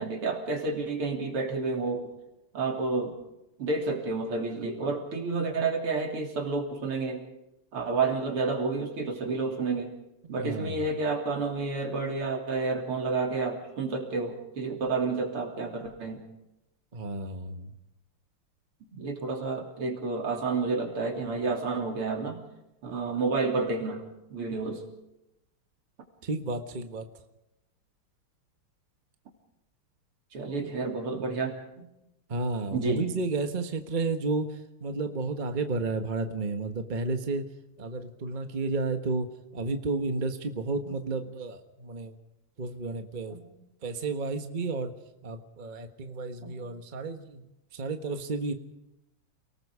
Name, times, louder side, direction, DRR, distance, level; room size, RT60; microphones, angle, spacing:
voice 1, 0.0-2.1 2.5-3.1 3.6-7.2 7.7-9.9 10.3-16.2 18.9-22.4 22.8-24.0 24.3-24.8 30.3-31.9 32.7-33.0 34.9-35.0 40.9-41.0 43.3-43.5 46.4-46.7, right 3 dB, 85° right, 1 dB, 4.1 m, -30 dB
voice 2, 10.4-10.9 16.9-17.7 26.2-27.1 30.4-30.7 32.3-37.5 37.8-39.3 39.5-42.1 42.6-43.4 43.8-44.9 45.2-47.4 47.7-48.5, right 3 dB, 25° right, 6 dB, 1.3 m, -32 dB
29.5 x 19.0 x 5.0 m, 0.89 s
omnidirectional pair, 2.4 m